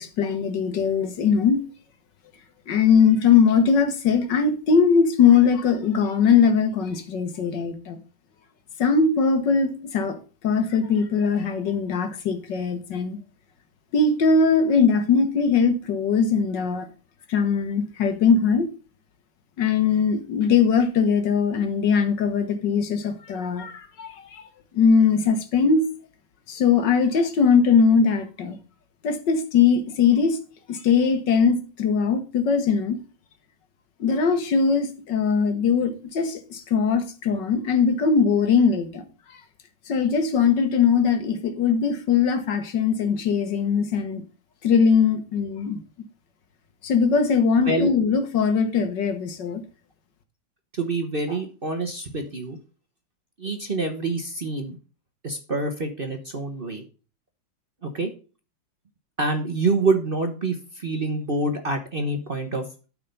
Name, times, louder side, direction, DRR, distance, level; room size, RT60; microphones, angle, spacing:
voice 1, 0.0-1.6 2.7-8.0 8.8-10.2 10.4-13.2 13.9-16.9 17.3-18.7 19.6-24.4 24.7-25.8 26.5-28.6 29.0-30.4 30.7-33.0 34.0-39.0 39.3-39.4 39.9-44.2 44.6-45.8 46.8-49.6, left 5 dB, 65° left, 1.8 m, -20 dB
voice 2, 50.7-52.6 53.4-54.7 55.2-56.8 57.8-58.1 59.2-62.6, right 3 dB, 35° right, 1.0 m, -26 dB
12.5 x 4.6 x 5.3 m
omnidirectional pair, 2.1 m